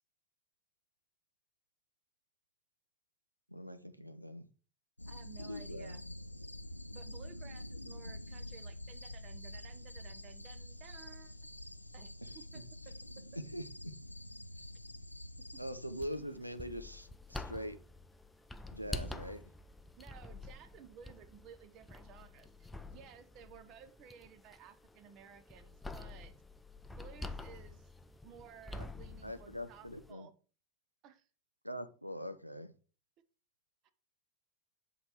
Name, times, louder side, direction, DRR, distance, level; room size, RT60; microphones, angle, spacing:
voice 1, 3.5-4.5 5.4-6.0 12.2-12.3 13.2-13.3 13.5-13.9 15.6-17.8 18.7-19.4 28.8-28.9 29.2-30.3 31.6-32.7, equal, 90° right, 11 dB, 0.7 m, -43 dB
sound 1, 5.0-16.1, left 1 dB, 85° left, 0.4 m, -47 dB
voice 2, 5.1-6.0 6.9-11.4 11.9-13.2 15.5-15.6 20.0-26.3 27.0-27.9 28.2-30.3 31.0-31.2 33.8-33.9, right 8 dB, 40° right, 12 dB, 0.8 m, -56 dB
sound 2, 16.0-30.1, left 2 dB, 10° left, 0.5 m, -48 dB
8.0 x 4.1 x 4.8 m, 0.36 s
figure-of-eight pair, 90°, 0 cm